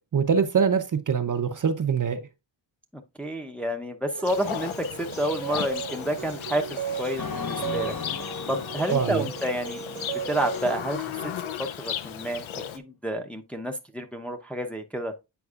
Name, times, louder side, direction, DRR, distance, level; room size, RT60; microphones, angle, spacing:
voice 1, 0.1-2.2 8.9-9.3, right 6 dB, 40° right, 0.6 m, -24 dB
voice 2, 2.9-7.9 8.5-11.3 11.6-15.1, right 1 dB, 5° left, 0.6 m, -30 dB
sound 1, 4.1-10.8, right 7 dB, 75° right, 0.8 m, -36 dB
Livestock farm animals working animals, 4.2-12.8, left 9 dB, 75° left, 0.7 m, -36 dB
sound 2, 7.2-10.6, left 6 dB, 45° left, 0.8 m, -37 dB
8.1 x 5.1 x 2.4 m
wide cardioid pair, 145°, 48 cm